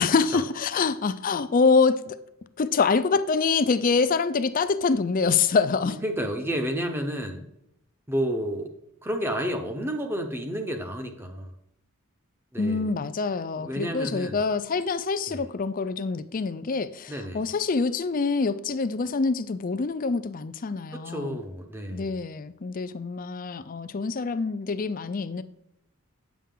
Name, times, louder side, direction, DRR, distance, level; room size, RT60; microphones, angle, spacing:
voice 1, 0.0-2.2 2.6-6.0 12.6-21.4 21.9-25.4, left 4 dB, 40° left, 0.4 m, -25 dB
voice 2, 5.8-7.4 8.1-8.7 9.0-11.5 12.5-12.9 13.6-14.4 15.3-15.5 17.1-17.5 20.9-22.2, equal, 10° right, 0.7 m, -31 dB
9.3 x 7.1 x 3.8 m
head